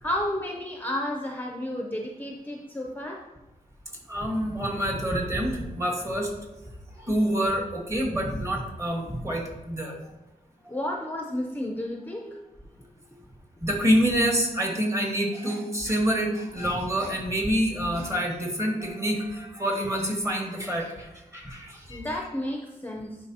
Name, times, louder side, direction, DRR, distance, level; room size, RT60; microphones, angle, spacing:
voice 1, 0.0-3.3 10.7-12.4 21.9-23.2, left 1 dB, 10° left, 1 dB, 0.6 m, -32 dB
voice 2, 4.1-6.3 7.0-10.0 12.2-12.4 13.6-22.0, equal, 20° right, 1 dB, 1.4 m, -27 dB
10.5 x 4.7 x 2.8 m, 1.0 s
wide cardioid pair, 110°, 15 cm